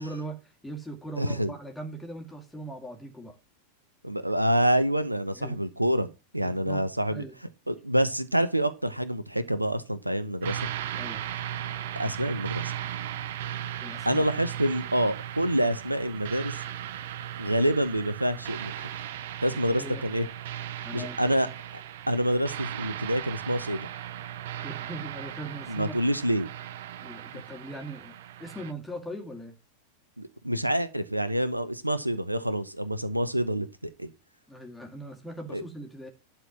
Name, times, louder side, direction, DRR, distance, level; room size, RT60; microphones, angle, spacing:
voice 1, 0.0-3.4 5.3-5.6 6.4-7.3 10.9-11.3 13.8-14.3 19.5-20.0 20.8-21.4 24.6-26.0 27.0-29.5 34.5-36.1, right 1 dB, 5° left, 2.4 m, -40 dB
voice 2, 1.2-1.5 4.0-6.1 6.3-7.2 7.7-10.6 12.0-12.7 14.0-16.6 17.4-18.9 19.4-20.3 20.9-21.5 22.1-23.9 25.7-26.5 30.2-34.1 35.5-35.6, equal, 85° right, 0.8 m, -27 dB
sound 1, 10.4-28.7, right 11 dB, 55° right, 0.6 m, -37 dB
11.5 x 4.4 x 7.4 m
figure-of-eight pair, 90°, 0 cm